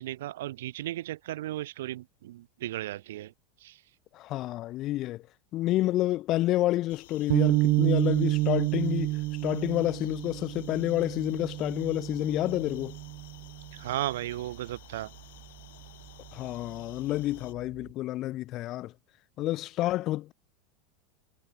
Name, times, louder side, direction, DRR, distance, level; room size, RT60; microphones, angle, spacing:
voice 1, 0.0-3.3 3.6-3.8 13.7-15.1, right 14 dB, 85° right, 1.2 m, -35 dB
voice 2, 4.1-5.2 5.5-13.0 16.3-18.9 19.4-20.3, left 16 dB, 40° left, 0.6 m, -29 dB
sound 1, 6.9-17.5, left 16 dB, 80° left, 1.1 m, -54 dB
sound 2, 7.3-13.7, right 21 dB, 50° right, 0.3 m, -29 dB
supercardioid pair, 140°, 0 cm